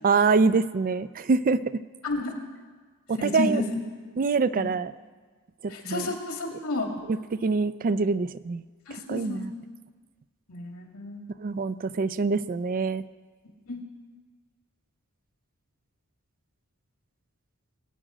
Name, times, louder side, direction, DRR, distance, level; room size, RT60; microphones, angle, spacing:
voice 1, 0.0-1.8 3.1-3.6 4.2-4.9 5.6-6.1 7.1-8.6 8.9-9.5 11.4-13.1, right 4 dB, 40° right, 15 dB, 0.4 m, -25 dB
voice 2, 3.2-3.6 4.6-4.7 5.7-6.9 8.9-9.5 10.5-11.2 13.7-13.8, left 2 dB, 85° left, 2 dB, 2.3 m, -31 dB
22.5 x 8.8 x 5.0 m, 1.5 s
head